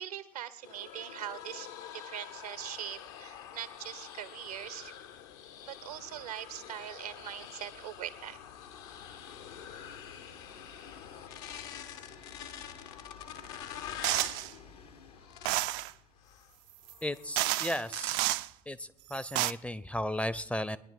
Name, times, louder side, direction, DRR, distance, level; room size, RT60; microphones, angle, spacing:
voice 1, 0.0-4.9 5.7-8.4, right 11 dB, 75° right, 16 dB, 0.8 m, -42 dB
sound 1, 0.6-14.4 15.2-15.8 16.2-16.5 16.9-17.6, left 9 dB, 60° left, 0.8 m, -46 dB
Train, 1.3-1.5 1.8-1.9 2.2-19.6, left 5 dB, 80° left, 1.3 m, -55 dB
sound 2, 14.0-14.5 15.4-15.9 16.9-17.0 17.4-18.5 19.1-19.5, right 17 dB, 60° right, 0.4 m, -30 dB
voice 2, 17.0-18.2 18.7-20.8, left 1 dB, 5° left, 17 dB, 0.5 m, -35 dB
21.5 x 10.0 x 4.2 m, 0.79 s
figure-of-eight pair, 50°, 20 cm